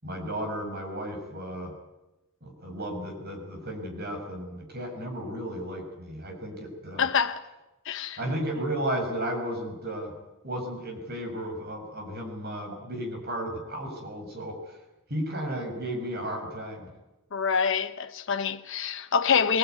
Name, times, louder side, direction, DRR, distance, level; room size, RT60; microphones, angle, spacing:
voice 1, 0.0-1.7 2.4-7.1 8.2-10.1 10.4-14.8 15.1-16.9, right 1 dB, 45° right, 6.5 m, -34 dB
voice 2, 7.0-7.4 7.8-8.2 17.3-19.6, left 6 dB, 60° left, 0.8 m, -26 dB
23.0 x 19.5 x 9.5 m
head